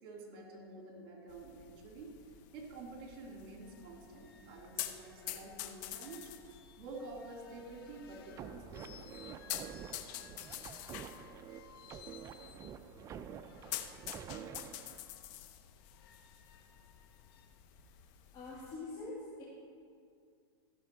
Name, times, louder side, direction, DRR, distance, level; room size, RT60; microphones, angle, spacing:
voice 1, 0.0-2.1 2.5-9.2, right 2 dB, 45° right, 0 dB, 2.8 m, -49 dB
sound 1, 1.3-18.8, left 12 dB, 50° left, 0.8 m, -48 dB
sound 2, 2.8-2.9 3.2-3.3 3.6-12.8 13.4-17.5, left 8 dB, 75° left, 1.0 m, -61 dB
sound 3, 8.3-15.0, right 8 dB, 25° right, 0.4 m, -48 dB
voice 2, 18.3-19.4, left 2 dB, 35° left, -6 dB, 2.1 m, -45 dB
14.5 x 6.8 x 4.6 m, 2.2 s
hypercardioid pair, 120°, 13 cm